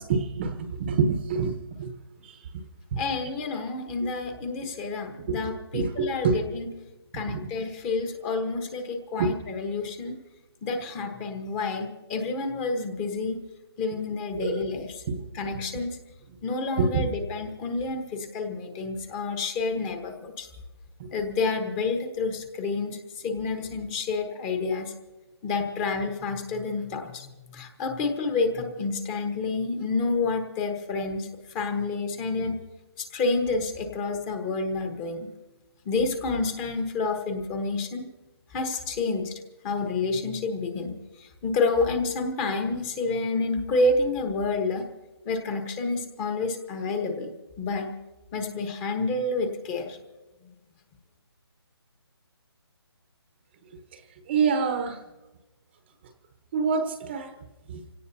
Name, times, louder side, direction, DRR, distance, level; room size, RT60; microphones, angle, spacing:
voice 1, 0.0-1.9 2.9-3.0 4.0-4.1 5.3-5.4 5.7-6.4 7.3-7.4 9.2-9.3 14.3-14.7 15.1-15.2 16.8-17.1 21.0-21.1 54.3-55.0 56.5-57.3 57.7-57.8, right 5 dB, 25° right, 7 dB, 1.0 m, -26 dB
voice 2, 3.0-6.7 7.1-10.1 10.6-13.4 13.8-15.0 15.3-15.9 16.4-20.5 21.1-23.0 23.2-24.9 25.4-31.3 31.5-32.6 33.0-35.3 35.8-38.0 38.5-44.8 45.2-47.9 48.3-50.0, left 3 dB, 15° left, 5 dB, 1.2 m, -29 dB
27.0 x 17.0 x 2.8 m, 1.1 s
hypercardioid pair, 165°, 14 cm